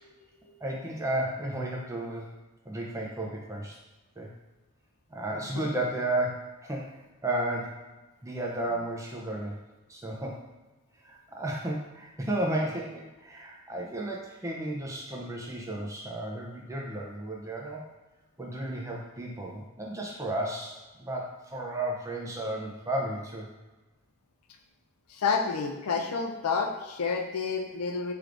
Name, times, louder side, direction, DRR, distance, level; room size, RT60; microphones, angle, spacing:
voice 1, 0.6-2.3 2.7-3.8 4.2-4.3 5.1-7.8 8.2-9.6 9.9-10.4 11.0-17.8 18.4-23.5, right 1 dB, 15° right, -1 dB, 0.5 m, -33 dB
voice 2, 25.1-28.1, left 5 dB, 90° left, 3 dB, 0.5 m, -29 dB
4.5 x 3.3 x 2.5 m, 1.2 s
head